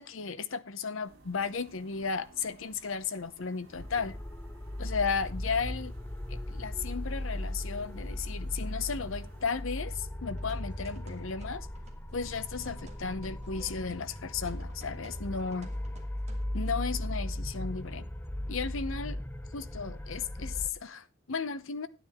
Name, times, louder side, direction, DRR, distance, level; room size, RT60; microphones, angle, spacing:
voice 1, 0.0-4.2 4.8-5.9 6.3-11.7 12.1-15.7 16.5-18.1 18.5-19.2 19.5-21.9, left 5 dB, 70° left, 0.8 m, -34 dB
sound 1, 1.0-9.6, right 2 dB, 80° right, 2.3 m, -58 dB
sound 2, 3.7-20.7, left 1 dB, 10° left, 0.5 m, -37 dB
sound 3, 10.4-16.4, right 1 dB, 30° right, 1.6 m, -54 dB
11.0 x 9.4 x 3.6 m
head